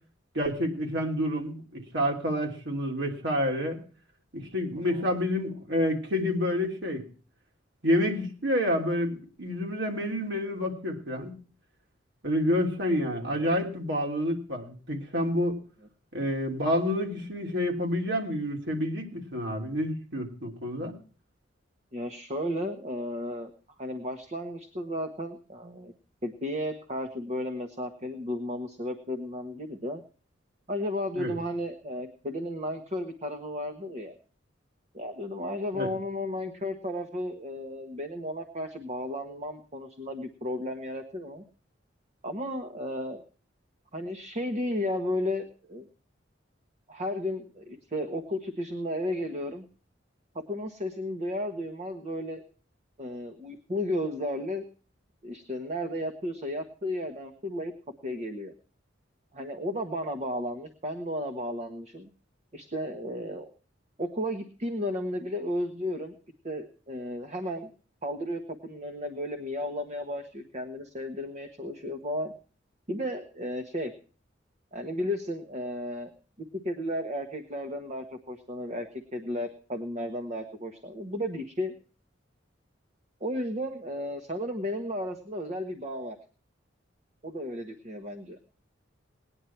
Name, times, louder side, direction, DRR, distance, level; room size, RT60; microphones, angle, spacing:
voice 1, 0.3-3.8 4.3-7.0 7.8-11.3 12.2-15.5 16.1-20.9 31.1-31.3 35.7-35.9, left 1 dB, 65° right, 1 dB, 3.3 m, -28 dB
voice 2, 13.1-13.5 21.9-23.5 23.8-25.9 26.2-30.0 30.7-34.2 34.9-41.4 42.2-43.2 43.9-45.9 46.9-49.6 50.3-52.4 53.0-54.6 55.2-57.7 58.0-58.5 59.3-62.1 62.5-63.5 64.0-66.1 66.4-67.7 68.0-72.3 72.9-73.9 74.7-76.1 76.6-81.7 83.2-86.2 87.2-88.4, left 1 dB, 35° right, 6 dB, 1.3 m, -34 dB
19.0 x 10.0 x 4.5 m, 0.41 s
head